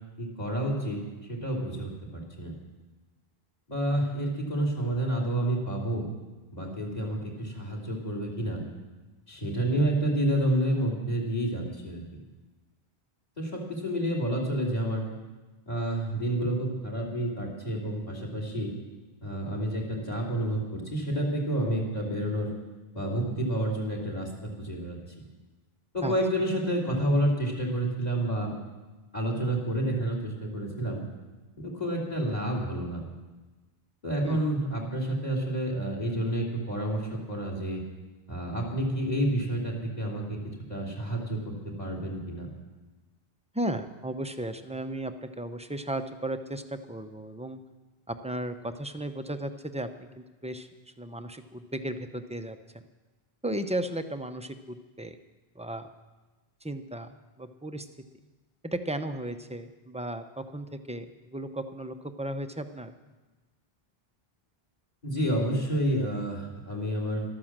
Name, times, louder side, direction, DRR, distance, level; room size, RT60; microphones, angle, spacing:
voice 1, 0.2-1.0 1.3-2.5 3.7-6.0 6.5-8.6 9.3-12.2 13.4-15.0 15.7-18.7 19.2-22.5 22.9-25.0 25.9-28.5 29.1-31.0 31.6-33.0 34.0-37.8 38.3-40.4 40.7-42.5 65.0-67.2, right 1 dB, 40° left, 0 dB, 3.1 m, -29 dB
voice 2, 43.5-47.6 48.1-50.7 51.0-52.8 53.4-55.2 55.6-55.9 56.6-57.1 57.4-57.9 58.6-62.9, right 1 dB, 10° right, 8 dB, 0.6 m, -35 dB
13.0 x 12.5 x 7.4 m, 1.2 s
omnidirectional pair, 1.0 m